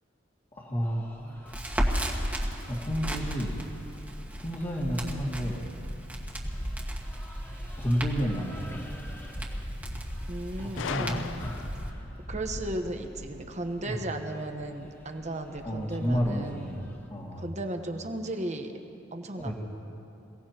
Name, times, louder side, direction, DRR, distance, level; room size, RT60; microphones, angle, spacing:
voice 1, 0.5-1.8 2.7-3.5 4.4-5.7 7.8-8.9 10.6-12.1 13.8-14.0 15.6-16.8 17.1-17.5 19.4-19.5, equal, 30° left, -7 dB, 2.1 m, -31 dB
sound 1, 0.8-17.1, equal, 10° left, 1.1 m, -42 dB
Crackle, 1.5-11.9, equal, 10° right, 1.6 m, -36 dB
voice 2, 10.3-11.5 12.3-16.9 17.4-18.7 19.1-19.5, right 1 dB, 40° right, 5 dB, 1.1 m, -35 dB
Gunshot gunfire, 10.8-12.0, left 6 dB, 75° left, 0.4 m, -36 dB
28.0 x 17.5 x 3.0 m, 2.9 s
head